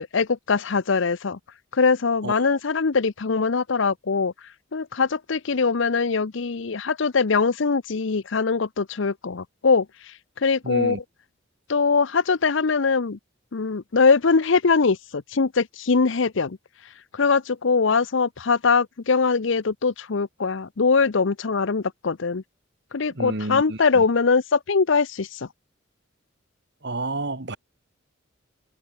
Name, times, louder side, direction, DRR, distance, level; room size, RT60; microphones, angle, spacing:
voice 1, 0.0-1.4 1.7-4.3 4.7-9.9 10.4-11.0 11.7-13.2 13.5-16.6 17.1-22.4 22.9-25.4, left 4 dB, 70° left, 0.7 m, -22 dB
voice 2, 2.2-2.6 10.6-11.0 23.2-23.8 26.8-27.6, right 2 dB, 55° right, 2.0 m, -30 dB
head